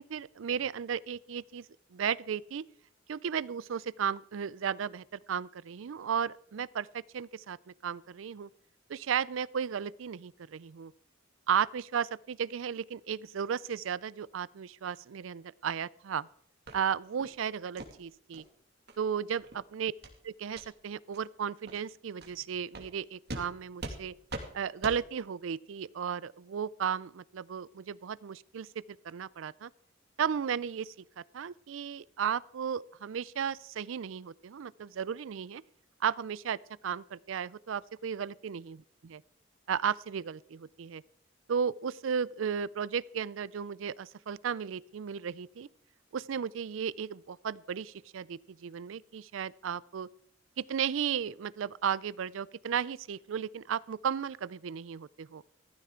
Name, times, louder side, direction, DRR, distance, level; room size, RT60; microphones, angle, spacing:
voice 1, 0.0-1.7 1.9-2.6 3.1-8.5 8.9-10.9 11.5-16.3 16.7-18.5 19.0-19.9 20.2-24.1 24.5-29.7 30.2-35.6 36.0-36.6 36.8-39.2 39.7-41.0 41.5-45.7 46.1-50.1 50.6-55.4, right 7 dB, 75° right, 0.4 m, -34 dB
sound 1, 16.7-16.8 17.2-17.3 17.8-17.9 18.3-18.4 18.9-19.0 19.4-19.6 20.0-20.2 20.5-20.7 21.1-21.2 21.7-21.8 22.2-22.3 22.7-22.9 23.3-23.4 23.8-24.0 24.3-24.5 24.8-25.0, right 1 dB, 55° right, 2.4 m, -41 dB
15.5 x 14.0 x 3.7 m
head